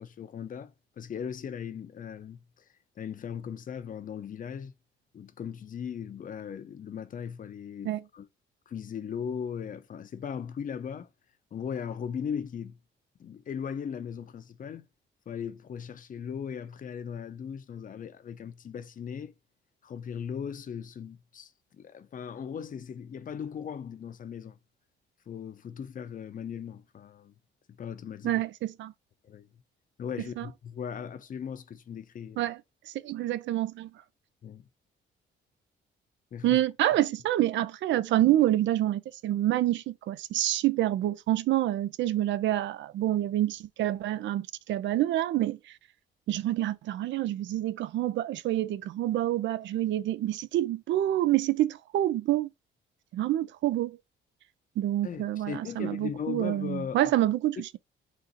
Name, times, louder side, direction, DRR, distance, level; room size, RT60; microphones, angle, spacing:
voice 1, 0.0-2.6 3.0-4.7 5.1-8.3 8.7-11.1 11.5-12.8 13.2-14.9 15.3-19.3 19.8-24.6 25.3-27.3 27.7-28.4 29.2-29.5 30.0-32.4 34.4-34.6 36.3-36.6 55.0-57.1, left 7 dB, 45° left, 0.6 m, -38 dB
voice 2, 28.2-28.9 30.4-30.5 32.4-32.6 33.0-33.9 36.4-45.6 46.3-52.5 53.1-54.0 54.8-57.8, right 13 dB, 70° right, 0.4 m, -27 dB
4.1 x 2.5 x 3.9 m
cardioid pair, 90°, 20 cm